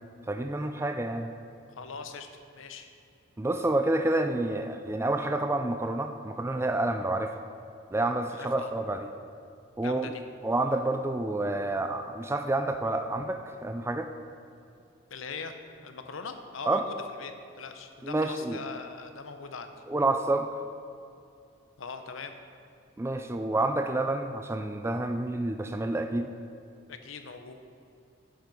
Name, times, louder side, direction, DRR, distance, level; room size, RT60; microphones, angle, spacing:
voice 1, 0.3-1.3 3.4-7.3 7.9-9.1 9.8-10.1 10.4-14.1 16.7-16.9 18.0-18.6 19.9-20.5 23.0-26.3, right 2 dB, 15° right, 6 dB, 0.3 m, -29 dB
voice 2, 1.7-2.3 2.5-2.9 8.3-8.7 9.8-10.2 15.1-15.6 15.8-19.7 21.8-22.4 26.9-27.5, left 5 dB, 80° left, 7 dB, 0.8 m, -41 dB
10.5 x 7.8 x 5.3 m, 2.5 s
head